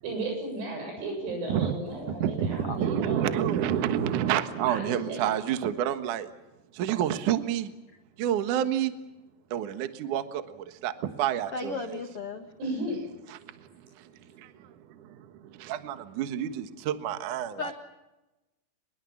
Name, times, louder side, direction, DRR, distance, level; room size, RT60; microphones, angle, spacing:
voice 1, 0.0-3.5 4.7-5.3 12.6-13.0, right 2 dB, 90° right, 3 dB, 10.0 m, -34 dB
voice 2, 2.1-6.3 6.7-7.7 8.2-8.9 9.5-12.0 13.3-17.7, right 10 dB, 65° right, 10 dB, 2.2 m, -29 dB
voice 3, 11.5-12.5 17.6-17.7, left 4 dB, 75° left, 5 dB, 1.3 m, -35 dB
24.0 x 21.5 x 7.3 m, 1.0 s
omnidirectional pair, 5.4 m